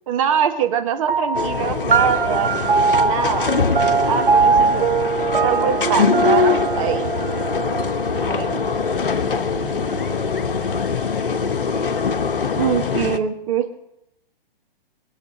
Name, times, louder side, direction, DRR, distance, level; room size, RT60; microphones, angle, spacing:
voice 1, 0.1-3.5 4.1-4.9 5.4-7.5 8.1-8.6 12.6-13.7, right 8 dB, 35° right, 6 dB, 1.6 m, -23 dB
sound 1, 1.1-9.9, right 5 dB, 60° right, 1.3 m, -22 dB
sound 2, 1.3-13.2, left 5 dB, 65° left, 1.1 m, -23 dB
voice 2, 4.5-6.0 9.0-11.0, equal, 10° left, -8 dB, 2.3 m, -40 dB
22.5 x 7.6 x 7.7 m, 0.81 s
figure-of-eight pair, 125°, 29 cm